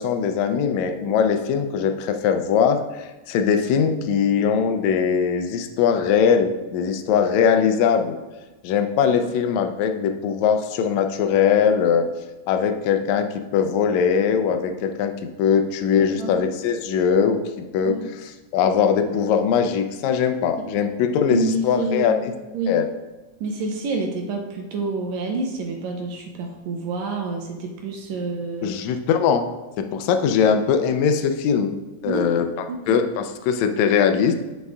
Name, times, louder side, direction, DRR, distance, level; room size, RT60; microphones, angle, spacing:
voice 1, 0.0-8.2 8.6-12.0 12.5-13.3 13.5-17.4 17.7-17.9 18.5-22.1 22.7-22.8 28.6-29.5 29.8-31.7 32.0-32.4 32.9-34.3, left 7 dB, 80° left, 6 dB, 1.6 m, -21 dB
voice 2, 16.0-16.3 17.8-18.1 20.6-20.7 21.3-22.2 22.5-22.8 23.4-28.8 32.0-32.4 32.7-33.0, right 3 dB, 75° right, 3 dB, 1.8 m, -28 dB
9.5 x 6.1 x 2.4 m, 1.1 s
omnidirectional pair, 3.8 m